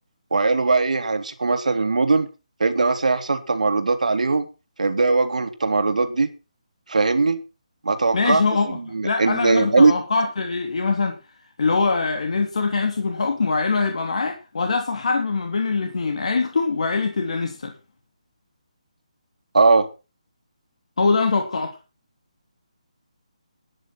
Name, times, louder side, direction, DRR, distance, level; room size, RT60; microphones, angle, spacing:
voice 1, 0.3-2.3 2.6-4.5 4.8-6.3 6.9-7.4 7.8-8.4 8.7-9.9 19.5-19.9, right 3 dB, 80° right, 2.6 m, -20 dB
voice 2, 8.1-8.8 9.0-11.2 11.6-17.7 21.0-21.8, left 4 dB, 60° left, 3.0 m, -23 dB
13.0 x 10.0 x 5.9 m
hypercardioid pair, 170°, 4 cm